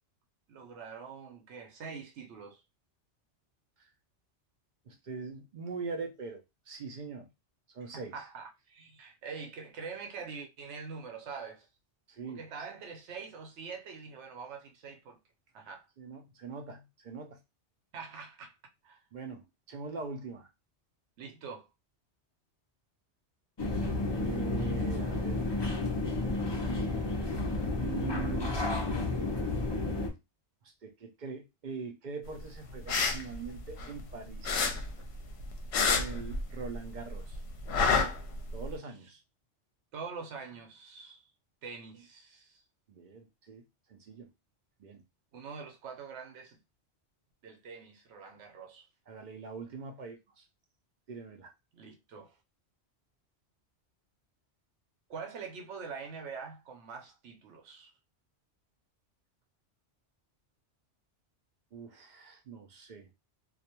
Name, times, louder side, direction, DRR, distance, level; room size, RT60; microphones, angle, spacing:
voice 1, 0.5-2.6 7.8-11.7 12.3-15.2 15.5-15.9 17.9-18.6 18.8-19.0 21.2-21.7 39.9-41.2 41.6-42.6 45.3-46.6 47.4-48.9 51.7-52.4 55.1-57.9, right 5 dB, 80° right, 1.0 m, -44 dB
voice 2, 4.9-7.3 7.7-8.1 12.1-12.7 16.0-17.4 19.1-20.5 24.1-25.4 27.8-29.0 30.6-34.8 35.9-37.4 38.5-39.2 42.9-43.6 43.9-44.3 44.8-45.0 49.1-50.5 51.1-51.5 61.7-63.1, right 5 dB, 60° right, 0.5 m, -42 dB
sound 1, 23.6-30.1, left 2 dB, 35° left, 0.4 m, -31 dB
sound 2, 32.7-34.1 34.4-36.8 37.1-38.7, left 4 dB, 70° left, 0.8 m, -29 dB
2.4 x 2.2 x 2.8 m
omnidirectional pair, 1.2 m